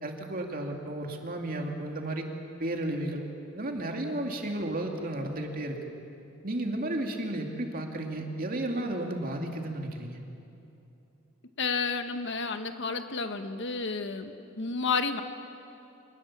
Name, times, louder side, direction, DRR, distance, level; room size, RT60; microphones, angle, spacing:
voice 1, 0.0-2.3 2.6-3.2 3.5-5.8 6.4-10.2, right 1 dB, 45° right, 2 dB, 2.5 m, -33 dB
voice 2, 11.6-15.2, left 4 dB, 65° left, 8 dB, 1.3 m, -31 dB
25.5 x 19.5 x 7.4 m, 2.8 s
head